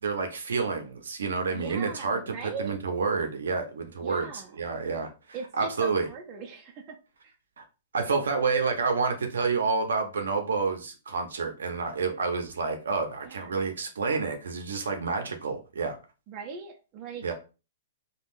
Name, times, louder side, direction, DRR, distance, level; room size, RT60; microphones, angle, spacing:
voice 1, 0.0-6.1 7.6-7.7 7.9-16.0 17.2-17.3, right 4 dB, 85° right, 0.6 m, -29 dB
voice 2, 1.5-2.7 4.0-4.5 5.3-7.0 13.3-13.4 16.3-17.3, right 5 dB, 35° right, 0.6 m, -39 dB
3.4 x 2.2 x 2.6 m
hypercardioid pair, 135°, 0 cm